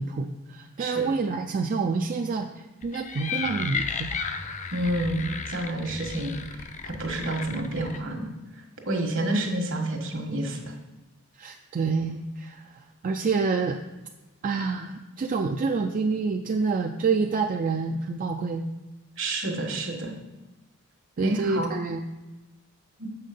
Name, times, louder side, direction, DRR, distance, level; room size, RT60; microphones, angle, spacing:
voice 1, 0.0-2.5 2.8-4.2 11.4-12.6 13.0-13.8 14.4-18.6 21.2-22.0, right 4 dB, 40° right, 4 dB, 0.4 m, -27 dB
sound 1, 2.8-8.0, left 5 dB, 35° left, 0.5 m, -34 dB
voice 2, 4.7-8.3 8.9-10.7 19.2-20.1 21.2-21.7 23.0-23.1, right 1 dB, 65° right, 2 dB, 1.4 m, -29 dB
7.4 x 5.6 x 5.2 m, 1.1 s
head